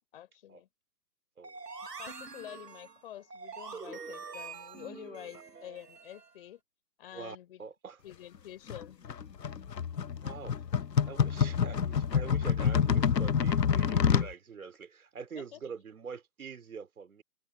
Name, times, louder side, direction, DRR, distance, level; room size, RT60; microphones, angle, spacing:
voice 1, 0.1-0.7 2.0-6.6 7.0-7.6 8.0-9.0 15.3-15.6, left 12 dB, 35° left, 5.9 m, -48 dB
sound 1, 1.4-6.3, right 4 dB, 75° right, 3.2 m, -45 dB
voice 2, 7.1-8.0 10.2-10.5 11.0-17.2, right 6 dB, 60° right, 4.6 m, -45 dB
sound 2, 8.7-14.3, left 7 dB, 85° left, 0.9 m, -27 dB
figure-of-eight pair, 150°, 48 cm